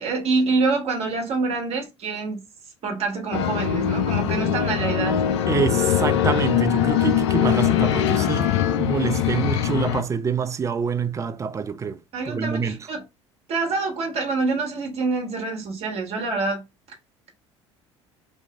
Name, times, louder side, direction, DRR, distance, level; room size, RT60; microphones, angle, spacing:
voice 1, 0.0-2.4 2.8-5.3 12.1-13.0 13.5-16.6, right 3 dB, 40° right, 1.2 m, -26 dB
sound 1, 3.3-10.0, left 10 dB, 65° left, 0.4 m, -22 dB
voice 2, 5.5-8.5 8.8-12.0 12.3-12.8, right 6 dB, 20° right, 0.4 m, -26 dB
2.9 x 2.5 x 3.3 m
figure-of-eight pair, 60°, 15 cm